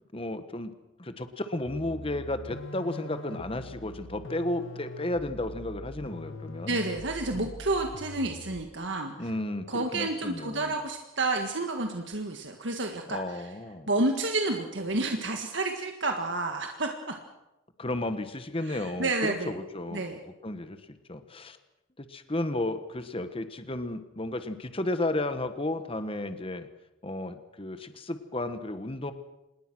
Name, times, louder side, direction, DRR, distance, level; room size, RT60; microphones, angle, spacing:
voice 1, 0.1-0.7 1.0-6.8 7.3-7.5 9.2-10.7 13.1-13.9 17.8-20.8 21.1-21.6 22.0-26.7 27.0-29.1, left 1 dB, 30° left, 10 dB, 1.4 m, -33 dB
sound 1, 1.6-8.8, left 2 dB, 80° left, 1.4 m, -43 dB
voice 2, 6.7-9.3 9.7-13.5 13.9-17.2 18.7-19.5 19.9-20.2, right 2 dB, 65° right, 4 dB, 1.8 m, -30 dB
26.5 x 20.5 x 6.3 m, 0.95 s
head